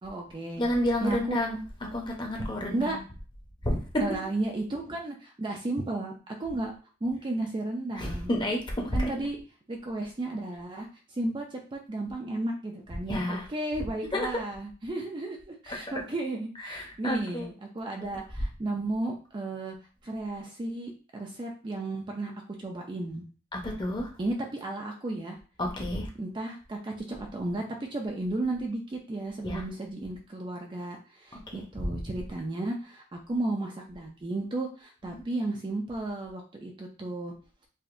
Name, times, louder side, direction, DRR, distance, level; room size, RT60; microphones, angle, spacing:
voice 1, 0.0-0.6 1.0-1.4 2.7-3.0 4.0-6.7 7.0-8.3 8.9-9.4 9.7-19.8 20.0-22.3 22.6-23.3 24.2-25.4 26.2-37.3, right 2 dB, 20° right, 1 dB, 0.4 m, -34 dB
voice 2, 0.6-3.0 3.6-4.0 7.9-9.1 13.1-13.5 14.1-14.3 15.7-15.8 16.6-17.5 23.5-24.1 25.6-26.1 29.4-29.6 31.5-32.0 35.0-35.2, left 1 dB, 20° left, 0 dB, 0.8 m, -30 dB
4.8 x 2.6 x 2.5 m, 0.37 s
head